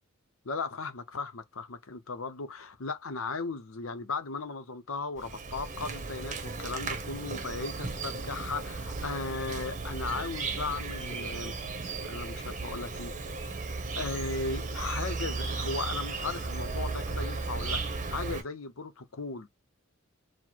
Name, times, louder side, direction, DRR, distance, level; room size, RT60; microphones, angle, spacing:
voice 1, 0.4-11.5 12.0-13.1 13.9-19.5, left 4 dB, 75° left, 0.8 m, -36 dB
Insect, 5.2-18.4, right 3 dB, 35° right, 0.8 m, -35 dB
4.3 x 2.1 x 4.5 m
head